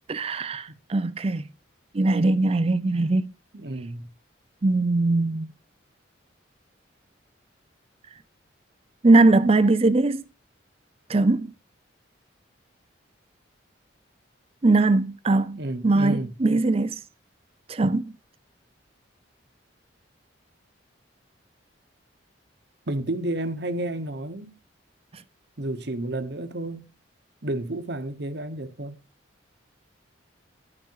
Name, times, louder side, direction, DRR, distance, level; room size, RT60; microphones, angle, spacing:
voice 1, 0.1-1.5 1.9-3.3 4.6-5.5 9.0-10.2 11.1-11.5 14.6-17.0 17.7-18.1, right 2 dB, 30° right, 0.5 m, -21 dB
voice 2, 3.5-4.1 15.5-16.3 22.9-24.5 25.6-26.9 27.4-29.0, right 1 dB, 60° right, 1.1 m, -31 dB
12.0 x 5.2 x 4.7 m
head